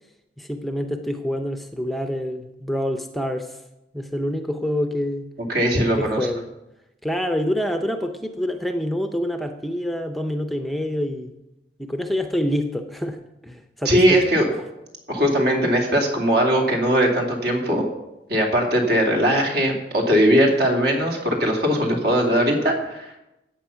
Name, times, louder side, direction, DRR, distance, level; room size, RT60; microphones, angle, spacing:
voice 1, 0.4-3.6 3.9-5.3 6.0-6.5 7.0-11.3 11.8-14.3, equal, ahead, 6 dB, 0.6 m, -26 dB
voice 2, 5.5-6.2 13.8-14.4 15.1-17.9 18.3-23.1, equal, 60° right, 1 dB, 2.7 m, -20 dB
14.0 x 8.6 x 5.8 m, 0.94 s
head